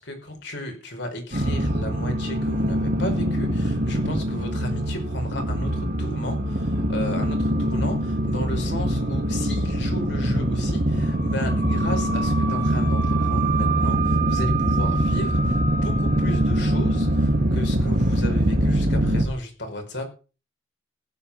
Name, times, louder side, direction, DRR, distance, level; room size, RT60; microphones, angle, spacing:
voice 1, 0.0-20.1, left 1 dB, 60° left, 3 dB, 5.1 m, -34 dB
sound 1, 1.3-19.3, right 1 dB, 50° right, 2.4 m, -23 dB
15.5 x 9.2 x 5.8 m, 0.35 s
head